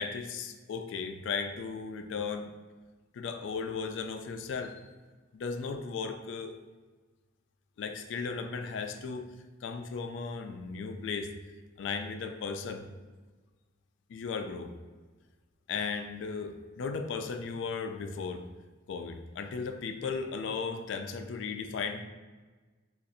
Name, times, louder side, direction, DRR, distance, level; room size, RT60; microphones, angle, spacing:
voice 1, 0.0-2.5 3.1-4.8 5.3-6.6 7.8-9.3 9.6-11.3 11.8-12.9 14.1-14.7 15.7-18.5 18.9-22.0, left 5 dB, 70° left, 7 dB, 0.3 m, -36 dB
2.6 x 2.4 x 3.9 m, 1.3 s
head